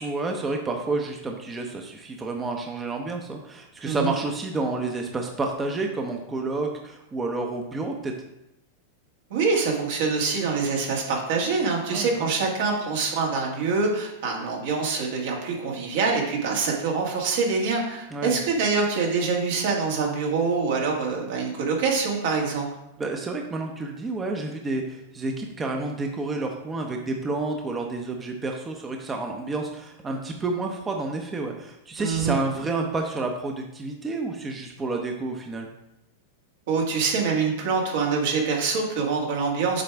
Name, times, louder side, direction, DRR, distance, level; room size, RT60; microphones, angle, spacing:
voice 1, 0.0-8.1 11.9-12.3 18.1-18.4 23.0-35.7, right 3 dB, 20° right, 2 dB, 0.7 m, -30 dB
voice 2, 9.3-22.7 32.0-32.4 36.7-39.8, right 4 dB, 70° right, -1 dB, 1.8 m, -25 dB
7.5 x 4.8 x 3.4 m, 0.87 s
hypercardioid pair, 125°, 0 cm